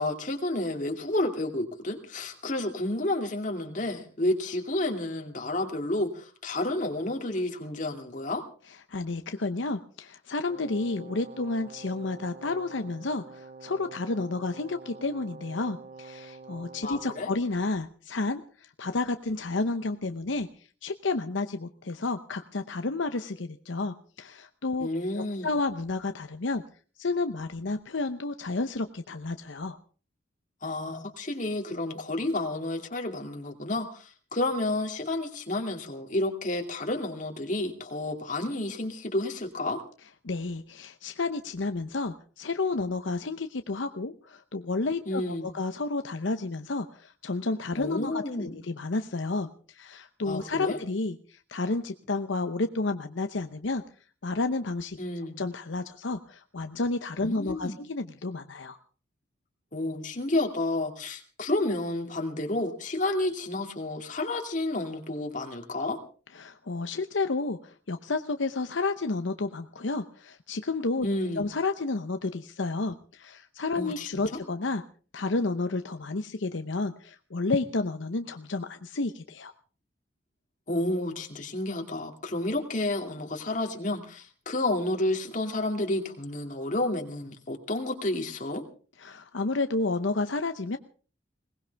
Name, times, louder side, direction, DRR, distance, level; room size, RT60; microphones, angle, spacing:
voice 1, 0.0-8.4 16.8-17.3 24.8-25.5 30.6-39.8 45.1-45.5 47.7-48.5 50.2-50.8 55.0-55.4 57.2-57.8 59.7-66.0 71.0-71.5 73.8-74.1 80.7-88.6, left 2 dB, 40° left, 3 dB, 2.5 m, -30 dB
voice 2, 8.9-20.5 20.8-24.9 25.2-26.6 27.0-29.8 40.2-53.8 54.2-55.0 55.4-58.8 66.4-71.1 71.4-74.8 75.1-79.5 89.0-90.8, left 3 dB, 75° left, 8 dB, 0.8 m, -31 dB
Brass instrument, 10.5-17.4, right 4 dB, 40° right, 1.1 m, -47 dB
21.5 x 19.0 x 3.5 m, 0.39 s
head